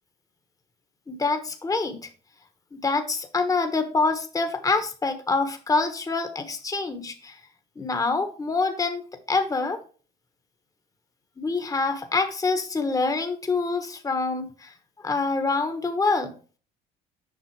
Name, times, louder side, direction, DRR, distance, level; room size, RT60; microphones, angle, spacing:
voice 1, 1.1-2.1 2.7-7.4 7.8-9.8 11.4-14.7 15.0-16.3, left 3 dB, 20° left, 7 dB, 1.1 m, -26 dB
7.5 x 5.4 x 4.6 m, 0.38 s
supercardioid pair, 90°, 19 cm